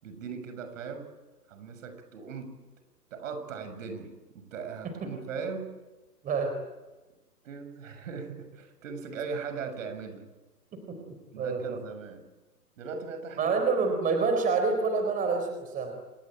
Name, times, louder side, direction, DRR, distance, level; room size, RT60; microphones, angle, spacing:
voice 1, 0.0-1.1 1.5-2.6 3.1-5.7 7.4-10.3 11.3-12.2 12.8-13.5, right 5 dB, 55° right, 8 dB, 7.1 m, -39 dB
voice 2, 10.7-11.8 13.4-15.9, right 4 dB, 15° right, 5 dB, 4.2 m, -28 dB
28.5 x 20.0 x 9.1 m, 1.1 s
hypercardioid pair, 140°, 47 cm